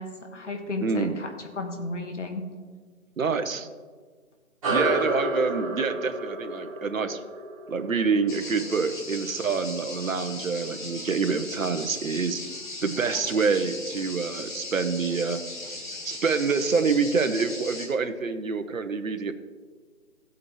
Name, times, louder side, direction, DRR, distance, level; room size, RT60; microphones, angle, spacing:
voice 1, 0.0-2.5, left 2 dB, 55° left, 4 dB, 1.8 m, -33 dB
voice 2, 0.8-1.2 3.2-3.7 4.7-7.2 7.7-12.4 12.8-15.8 16.1-19.3, right 5 dB, 70° right, 9 dB, 1.0 m, -27 dB
sound 1, 4.6-9.5, right 2 dB, 25° right, 2.1 m, -31 dB
sound 2, 8.3-17.9, left 2 dB, 35° left, 1.8 m, -38 dB
15.0 x 8.5 x 3.2 m, 1.5 s
figure-of-eight pair, 165°, 43 cm